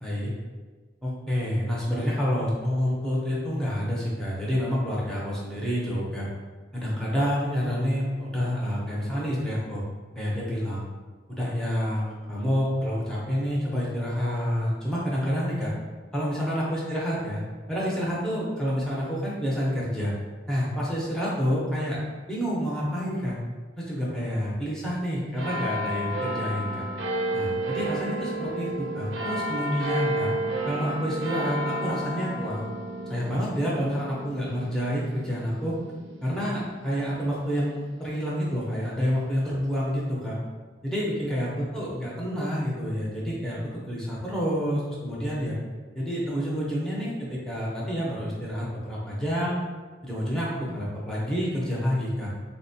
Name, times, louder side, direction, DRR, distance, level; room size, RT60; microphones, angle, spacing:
voice 1, 0.0-0.3 1.0-6.3 6.7-9.8 10.1-10.8 11.3-15.7 16.1-17.4 17.7-20.1 20.5-22.0 22.3-23.4 23.8-26.9 27.3-30.3 30.7-32.6 33.1-35.8 36.2-40.4 40.8-45.6 45.9-49.6 50.0-52.3, equal, 5° left, -6 dB, 0.5 m, -28 dB
sound 1, 25.4-38.3 38.9-39.0, right 1 dB, 90° right, 0.5 m, -32 dB
3.9 x 2.1 x 2.6 m, 1.4 s
head